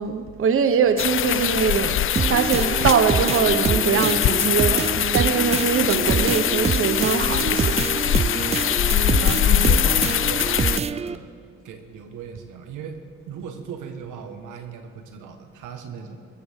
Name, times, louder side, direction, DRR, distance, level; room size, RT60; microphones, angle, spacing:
voice 1, 0.0-7.8, right 6 dB, 45° right, 9 dB, 0.9 m, -22 dB
sound 1, 1.0-10.8, left 11 dB, 45° left, 0.4 m, -22 dB
sound 2, 2.2-11.2, right 6 dB, 20° right, 0.4 m, -26 dB
voice 2, 8.4-8.7 9.1-11.3 11.6-13.0 13.3-16.2, right 6 dB, 90° right, 6 dB, 1.4 m, -37 dB
23.0 x 14.0 x 3.6 m, 2.3 s
cardioid pair, 90°, 30 cm